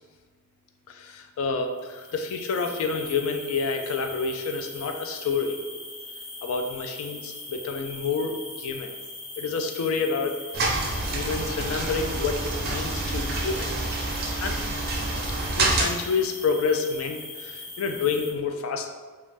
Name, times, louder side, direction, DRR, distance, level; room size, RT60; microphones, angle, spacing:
voice 1, 0.9-5.6 6.4-8.9 9.4-10.3 10.6-13.7 14.4-14.6 15.3-18.9, left 4 dB, 70° left, 5 dB, 0.3 m, -29 dB
sound 1, 1.7-18.3, left 2 dB, 30° left, 0.6 m, -40 dB
sound 2, 10.5-15.9, right 2 dB, 45° right, 0.4 m, -28 dB
2.5 x 2.2 x 3.2 m, 1.4 s
head